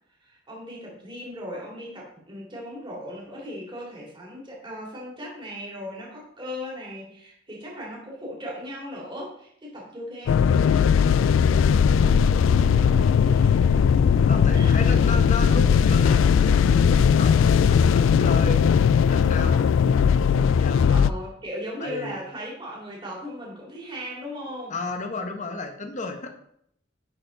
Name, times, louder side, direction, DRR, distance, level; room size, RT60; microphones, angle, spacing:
voice 1, 0.2-11.6 12.4-13.8 14.5-14.8 20.9-24.7, equal, 25° right, -4 dB, 2.6 m, -38 dB
sound 1, 10.3-21.1, left 7 dB, 85° left, 0.3 m, -18 dB
voice 2, 14.3-18.8 19.1-19.7 20.6-20.8 21.8-22.1 24.7-26.3, left 3 dB, 40° left, 5 dB, 1.0 m, -33 dB
10.5 x 4.3 x 3.9 m, 0.70 s
head